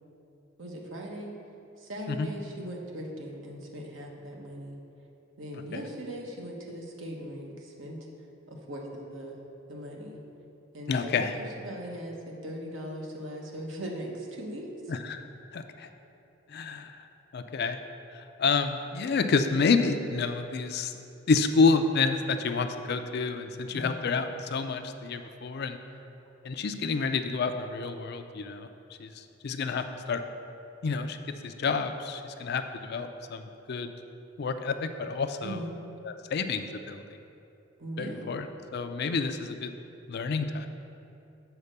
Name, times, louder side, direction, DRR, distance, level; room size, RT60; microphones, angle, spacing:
voice 1, 0.6-1.3 1.8-4.8 5.4-8.0 8.5-9.4 9.7-10.2 10.7-14.7 23.7-24.0 35.4-35.7 37.8-38.3, equal, 75° right, 0 dB, 1.1 m, -39 dB
voice 2, 10.9-11.3 14.9-15.2 15.5-15.9 16.5-16.9 17.3-17.8 18.1-20.9 21.3-25.8 26.4-28.7 29.0-30.2 30.8-31.2 31.4-33.9 34.4-35.6 36.0-37.0 38.0-38.5 38.7-39.7 40.1-40.7, left 4 dB, 55° left, 8 dB, 0.4 m, -29 dB
7.0 x 4.4 x 6.6 m, 2.8 s
head